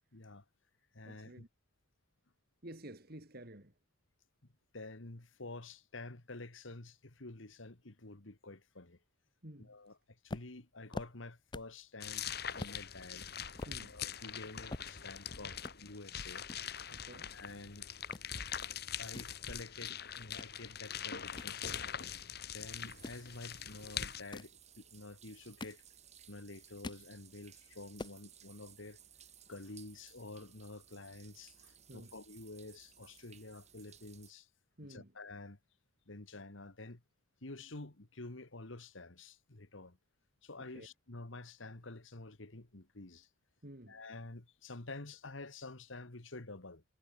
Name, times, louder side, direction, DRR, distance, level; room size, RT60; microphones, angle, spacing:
voice 1, 0.1-0.4 0.9-1.5 4.7-9.0 9.6-12.2 12.6-13.3 13.8-16.4 17.2-17.9 19.0-21.8 22.5-25.8 26.3-29.0 29.5-34.5 34.9-35.6 36.1-37.0 37.4-40.0 40.4-43.3 43.9-46.8, left 2 dB, 70° left, 1.9 m, -49 dB
voice 2, 1.0-1.5 2.6-3.7 9.4-9.8 13.7-14.0 16.9-17.4 31.9-32.1 34.8-35.1 40.6-40.9 43.6-44.0, right 1 dB, 50° right, 3.1 m, -51 dB
sound 1, 10.3-11.8 12.2-12.3 12.6-12.8 13.3-15.3 15.6-15.8 16.5-17.7 17.9-18.3 18.8-20.5 20.9-22.2 22.9-23.3 24.1-24.6 25.2-26.2 26.5-27.1 27.5-27.6 27.8-28.2, left 2 dB, 20° left, 0.5 m, -46 dB
sound 2, 12.0-24.2, left 8 dB, 50° left, 2.4 m, -43 dB
sound 3, 22.6-34.3, right 9 dB, 35° right, 7.7 m, -60 dB
head